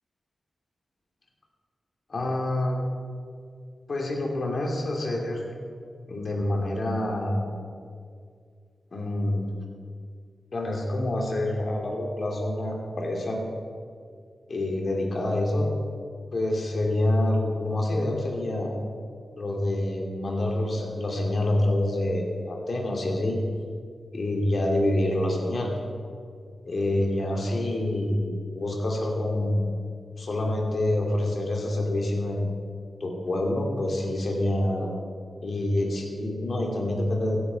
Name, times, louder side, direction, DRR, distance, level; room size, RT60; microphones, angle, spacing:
voice 1, 2.1-2.8 3.9-5.5 6.1-7.5 8.9-9.4 10.5-13.4 14.5-15.7 16.3-18.8 19.4-23.4 24.1-25.7 26.7-29.7 30.2-32.5 33.0-35.0 35.4-37.4, left 1 dB, 55° left, 0 dB, 2.4 m, -27 dB
15.5 x 9.4 x 4.0 m, 2.2 s
cardioid pair, 65°, 0 cm